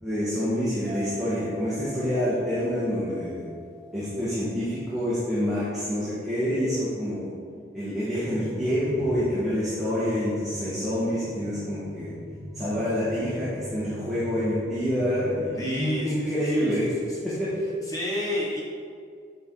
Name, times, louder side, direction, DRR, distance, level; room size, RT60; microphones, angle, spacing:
voice 1, 0.0-3.4 3.9-7.3 7.7-12.1 12.5-16.9 17.4-17.5, equal, ahead, -12 dB, 1.4 m, -27 dB
sound 1, 0.8-5.6, left 1 dB, 65° left, 1.3 m, -44 dB
sound 2, 8.3-15.5, equal, 30° right, 1.5 m, -41 dB
voice 2, 15.6-17.2 17.9-18.6, left 1 dB, 20° left, -5 dB, 1.1 m, -32 dB
8.4 x 4.5 x 3.8 m, 2.2 s
head